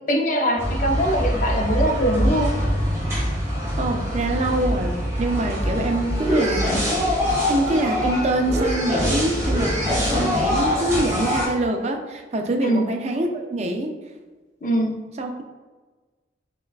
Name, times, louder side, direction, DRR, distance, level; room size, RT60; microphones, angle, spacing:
voice 1, 0.1-2.6 12.6-12.9 14.6-14.9, equal, 45° left, 2 dB, 0.5 m, -22 dB
sound 1, 0.6-11.5, equal, 15° right, 1.1 m, -24 dB
voice 2, 3.8-6.8 7.5-13.9 15.2-15.4, right 1 dB, 35° right, 4 dB, 0.4 m, -25 dB
6.4 x 2.3 x 2.3 m, 1.3 s
head